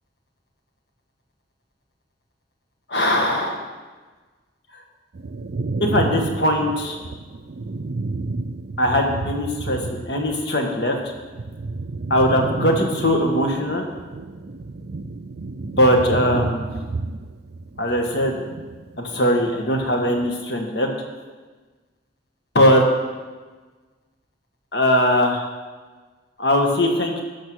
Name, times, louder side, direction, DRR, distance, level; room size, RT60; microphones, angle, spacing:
voice 1, 2.9-3.6 5.8-7.0 8.8-11.0 12.1-13.9 15.7-16.6 17.8-18.4 19.0-20.9 22.5-22.8 24.7-25.4 26.4-27.2, equal, 60° left, 2 dB, 1.7 m, -20 dB
sound 1, 5.1-10.4 10.7-19.3 19.6-20.3, right 3 dB, 55° right, 0.5 m, -31 dB
12.0 x 6.9 x 6.3 m, 1.3 s
head